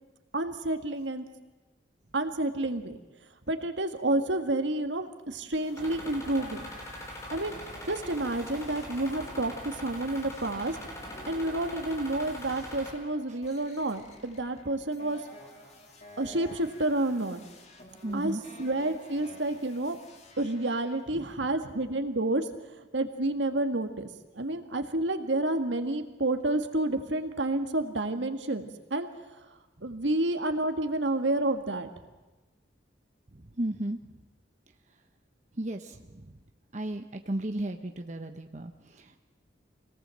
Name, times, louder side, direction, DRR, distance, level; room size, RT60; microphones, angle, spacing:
voice 1, 0.3-1.2 2.1-3.0 3.5-6.7 7.3-7.6 7.8-10.8 11.3-15.2 16.2-17.4 18.1-20.0 20.4-22.5 22.7-24.1 24.3-29.1 29.4-29.5 29.8-31.9, right 2 dB, 75° right, 7 dB, 1.9 m, -29 dB
sound 1, 5.5-21.2, left 1 dB, 35° left, 2.4 m, -50 dB
sound 2, 5.8-12.9, equal, 15° left, 4.8 m, -42 dB
voice 2, 18.0-18.4 33.3-34.0 35.6-36.2 36.7-39.2, right 1 dB, 40° right, 5 dB, 1.0 m, -34 dB
25.5 x 18.5 x 7.7 m, 1.2 s
head